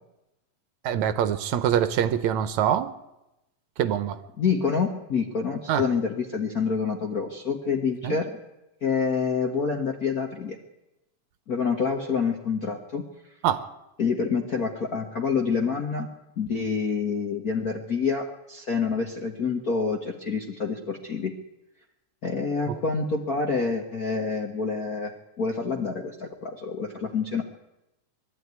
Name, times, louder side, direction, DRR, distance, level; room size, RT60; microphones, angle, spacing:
voice 1, 0.8-2.9 3.8-4.2 5.7-5.8 8.0-8.2 13.4-13.6 22.7-22.8, right 9 dB, 75° right, 12 dB, 2.1 m, -24 dB
voice 2, 4.4-8.4 8.8-10.6 11.5-13.0 14.0-16.1 16.4-21.3 22.2-27.4, left 5 dB, 50° left, 2 dB, 1.1 m, -27 dB
22.0 x 12.5 x 9.5 m, 0.95 s
omnidirectional pair, 3.5 m